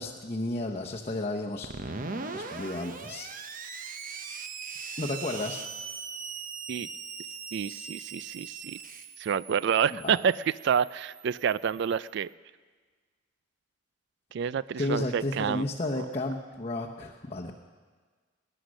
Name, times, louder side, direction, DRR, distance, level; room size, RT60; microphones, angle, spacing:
voice 1, 0.0-1.7 2.3-3.3 5.0-5.6 9.9-10.2 14.8-17.5, left 2 dB, 30° left, -1 dB, 0.9 m, -32 dB
Screech, 1.6-12.1, right 5 dB, 45° right, 0.8 m, -40 dB
voice 2, 7.5-8.8 9.2-12.3 14.3-15.6 16.0-16.1, right 7 dB, 60° right, 19 dB, 0.3 m, -28 dB
20.5 x 9.9 x 6.4 m, 1.5 s
head